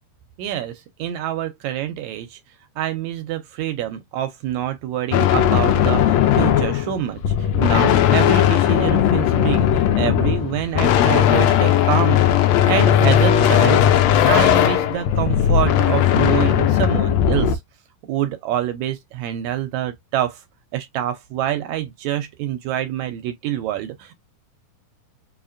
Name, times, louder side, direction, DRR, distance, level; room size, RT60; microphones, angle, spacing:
voice 1, 0.4-2.4 2.8-17.6 18.0-20.4 20.7-24.1, right 11 dB, 80° right, 1.7 m, -26 dB
sound 1, 5.1-17.6, left 10 dB, 85° left, 1.5 m, -17 dB
5.0 x 2.7 x 2.4 m
omnidirectional pair, 3.7 m